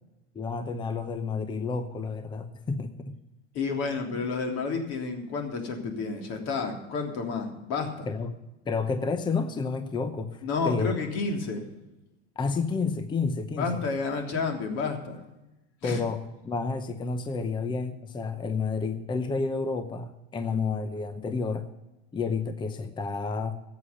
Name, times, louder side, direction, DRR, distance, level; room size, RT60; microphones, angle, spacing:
voice 1, 0.3-3.2 8.1-8.3 8.6-11.0 12.4-13.7 15.8-21.7 22.1-23.6, left 4 dB, 15° left, 9 dB, 0.8 m, -30 dB
voice 2, 3.5-8.1 10.4-11.6 13.6-15.2 15.8-16.0, left 4 dB, 45° left, 3 dB, 3.3 m, -30 dB
14.0 x 8.5 x 7.0 m, 0.98 s
supercardioid pair, 120°, 34 cm